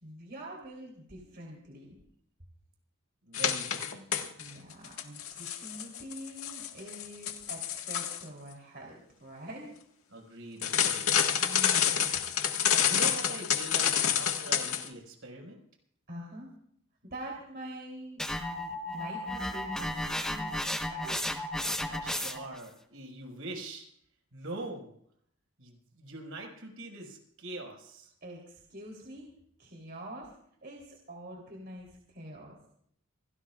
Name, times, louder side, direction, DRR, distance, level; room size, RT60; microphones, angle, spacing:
voice 1, 0.0-1.9 4.4-9.8 11.4-12.1 16.1-16.5 17.0-21.2 28.2-29.3 29.6-30.3 30.6-32.6, right 1 dB, 45° right, -1 dB, 3.5 m, -45 dB
voice 2, 3.2-4.3 10.1-11.2 12.6-15.6 21.3-23.9 24.3-24.9 25.6-28.1, right 2 dB, 65° right, 2 dB, 5.5 m, -43 dB
sound 1, 3.3-4.5 4.8-8.2 10.6-14.9, left 9 dB, 75° left, 1.7 m, -28 dB
sound 2, 18.2-22.6, left 1 dB, 5° left, 1.1 m, -34 dB
27.0 x 18.0 x 2.5 m, 0.67 s
head